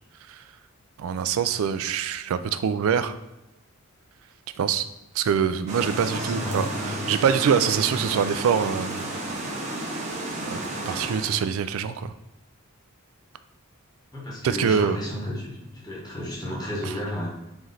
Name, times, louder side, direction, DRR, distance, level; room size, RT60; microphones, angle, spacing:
voice 1, 1.0-3.2 4.6-4.9 5.1-9.2 10.5-10.6 10.9-12.1 14.4-15.0, right 7 dB, 70° right, 13 dB, 0.3 m, -24 dB
sound 1, 5.7-11.5, right 1 dB, 30° right, 0.8 m, -32 dB
voice 2, 6.0-7.0 14.1-17.3, left 1 dB, 20° left, -4 dB, 1.1 m, -33 dB
4.0 x 3.1 x 3.8 m, 0.96 s
head